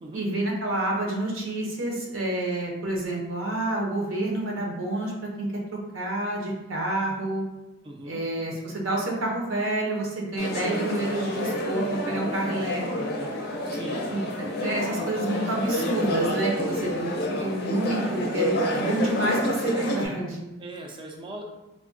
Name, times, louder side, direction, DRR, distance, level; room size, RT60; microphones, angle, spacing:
voice 1, 0.1-7.4 8.1-13.3 14.1-17.1 17.4-20.4, right 1 dB, 75° right, -1 dB, 0.7 m, -28 dB
voice 2, 7.8-8.2 13.6-14.0 20.6-21.4, right 2 dB, 25° right, 1 dB, 0.3 m, -39 dB
sound 1, 10.4-20.1, left 1 dB, 50° left, 0.5 m, -29 dB
3.5 x 2.1 x 2.5 m, 1.0 s
head